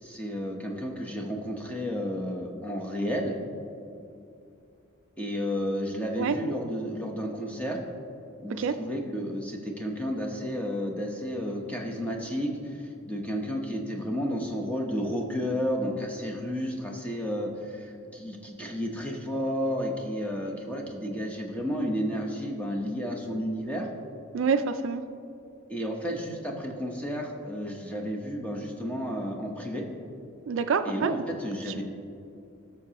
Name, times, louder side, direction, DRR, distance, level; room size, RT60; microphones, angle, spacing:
voice 1, 0.0-3.3 5.2-7.8 8.4-23.9 25.7-29.8 30.8-31.8, equal, 5° left, 0 dB, 0.8 m, -32 dB
voice 2, 24.3-25.0 30.5-31.1, right 5 dB, 55° right, 9 dB, 0.3 m, -26 dB
16.0 x 6.6 x 2.9 m, 2.6 s
head